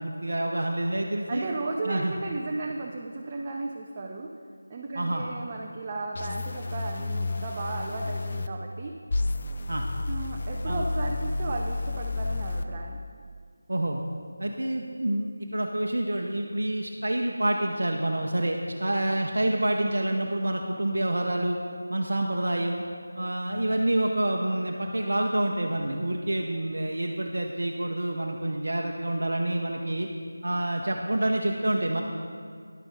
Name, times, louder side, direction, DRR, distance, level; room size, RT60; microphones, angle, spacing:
voice 1, 0.0-1.5 1.8-2.1 4.9-5.2 9.7-9.9 10.7-10.9 13.7-14.0 14.4-21.6 21.9-22.8 23.1-30.1 30.4-32.0, right 1 dB, 65° right, 1 dB, 0.7 m, -27 dB
voice 2, 1.3-4.3 4.7-8.9 10.1-13.0, right 3 dB, 25° right, 0 dB, 0.5 m, -35 dB
sound 1, 6.1-8.5 9.1-12.6, left 3 dB, 40° left, 0.4 m, -31 dB
10.0 x 8.9 x 3.6 m, 2.1 s
figure-of-eight pair, 165°, 0 cm